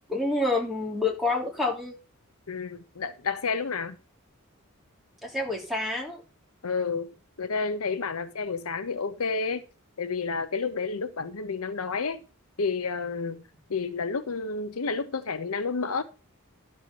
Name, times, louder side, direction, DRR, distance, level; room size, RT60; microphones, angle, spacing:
voice 1, 0.1-2.0 5.2-6.2, left 2 dB, ahead, 3.2 m, -28 dB
voice 2, 2.5-4.0 6.6-7.1 7.4-9.6 10.0-12.2 12.6-13.4 13.7-16.0, left 4 dB, 80° left, 0.9 m, -30 dB
12.5 x 4.5 x 6.9 m
head